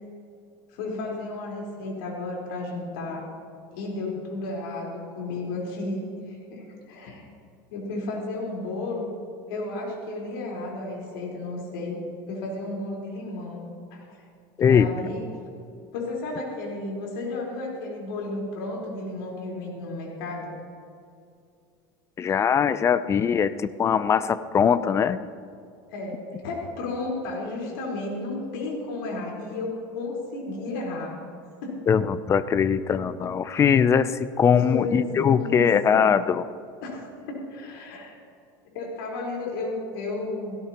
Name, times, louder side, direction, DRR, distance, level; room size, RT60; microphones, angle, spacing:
voice 1, 0.7-3.3 3.7-7.2 7.7-9.1 9.5-12.0 12.3-13.6 13.9-14.2 14.6-15.2 15.9-20.5 25.9-26.2 26.4-31.2 31.6-31.8 34.7-35.6 35.9-36.0 36.8-38.1 38.7-40.6, left 2 dB, 80° left, -2 dB, 4.2 m, -33 dB
voice 2, 14.6-14.9 22.2-25.2 31.9-36.5, left 7 dB, 25° left, 15 dB, 0.5 m, -21 dB
17.0 x 16.5 x 3.0 m, 2.4 s
supercardioid pair, 130°, 11 cm